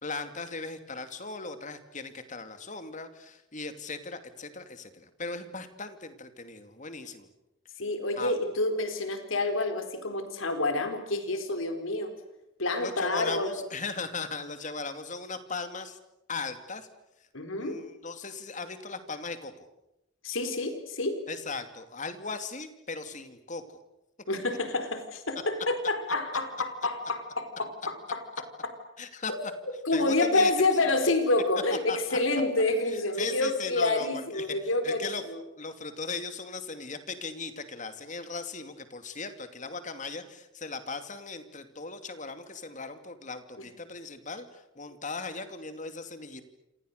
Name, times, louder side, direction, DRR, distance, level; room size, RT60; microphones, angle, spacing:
voice 1, 0.0-7.3 8.2-8.3 12.8-16.0 16.3-16.9 17.6-19.7 21.3-23.6 29.0-29.3 29.9-30.9 31.9-32.2 33.2-34.1 34.3-35.2 35.6-46.4, left 4 dB, 40° left, 9 dB, 2.7 m, -38 dB
voice 2, 7.8-12.1 12.6-13.5 17.3-17.8 20.2-21.2 24.3-28.2 29.3-29.4 29.8-35.4, left 2 dB, 80° left, 8 dB, 4.3 m, -28 dB
28.0 x 27.5 x 6.7 m, 0.88 s
head